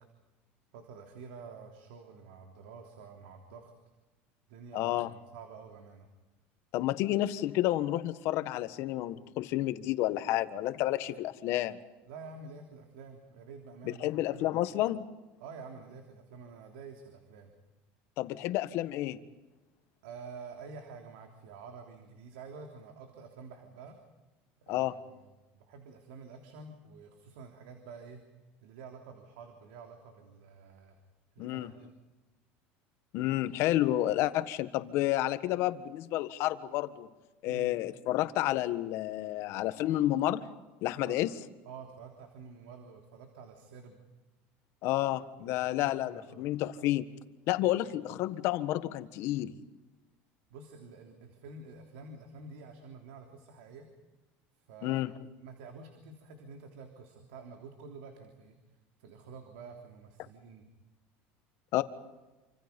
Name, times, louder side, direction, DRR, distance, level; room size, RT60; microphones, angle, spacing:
voice 1, 0.7-3.7 4.5-6.1 12.1-14.6 15.4-17.5 20.0-24.0 24.6-25.3 25.7-28.2 28.6-30.9 31.3-31.9 37.5-37.7 40.9-41.2 41.6-44.0 45.4-46.5 47.6-47.7 50.5-53.9 54.6-55.0 55.4-58.6 59.0-60.6, right 4 dB, 90° right, 4 dB, 3.4 m, -49 dB
voice 2, 4.7-5.1 6.7-11.8 14.0-15.0 18.2-19.2 24.7-24.9 31.4-31.7 33.1-37.1 37.4-40.5 40.8-41.3 44.8-47.1 47.5-49.5 54.8-55.1 61.7-61.8, left 15 dB, 55° left, 11 dB, 1.5 m, -30 dB
28.0 x 26.0 x 5.4 m, 1.2 s
cardioid pair, 145°, 5 cm